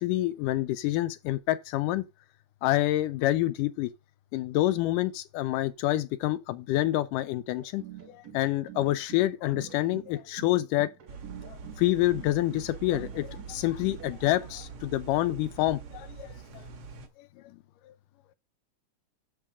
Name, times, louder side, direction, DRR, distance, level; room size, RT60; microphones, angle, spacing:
voice 1, 0.0-2.1 2.6-3.9 4.3-7.8 8.1-10.9 11.5-16.3 16.5-16.6 17.2-17.6 17.9-18.0, left 15 dB, 85° left, 2.3 m, -27 dB
sound 1, 7.6-14.4, right 11 dB, 80° right, 0.8 m, -47 dB
sound 2, 11.1-17.1, right 5 dB, 55° right, 1.8 m, -44 dB
10.5 x 3.7 x 6.1 m
omnidirectional pair, 3.7 m